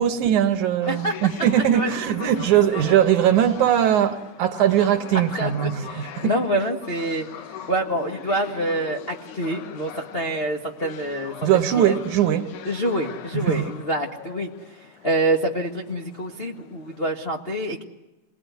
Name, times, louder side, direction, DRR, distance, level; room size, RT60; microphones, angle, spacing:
voice 1, 0.0-6.3 11.4-12.5 13.3-13.7, right 10 dB, 70° right, 2.3 m, -20 dB
sound 1, 0.8-17.1, left 9 dB, 70° left, 2.5 m, -41 dB
voice 2, 0.9-1.2 1.7-1.9 2.7-2.9 5.3-5.5 5.8-7.3 7.7-11.3 11.8-12.0 12.6-14.5 15.0-17.8, right 1 dB, 40° left, 0.8 m, -26 dB
28.0 x 20.0 x 9.4 m
omnidirectional pair, 3.9 m